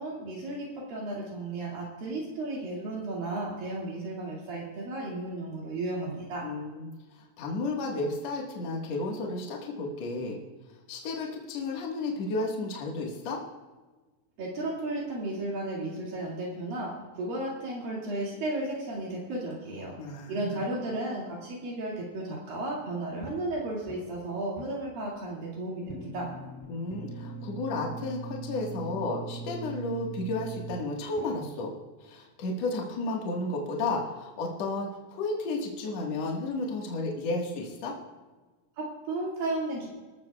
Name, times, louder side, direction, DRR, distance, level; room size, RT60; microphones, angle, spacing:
voice 1, 0.0-6.5 14.4-19.9 20.3-26.3 38.8-39.9, right 2 dB, 70° right, -4 dB, 4.0 m, -34 dB
voice 2, 6.4-10.4 10.9-13.4 20.0-20.6 26.7-31.7 32.0-38.0, left 2 dB, 55° left, -1 dB, 2.4 m, -33 dB
sound 1, 23.2-24.3 24.6-25.4 25.9-31.2, right 4 dB, 10° left, 2.2 m, -41 dB
26.0 x 13.5 x 2.3 m, 1.3 s
omnidirectional pair, 4.3 m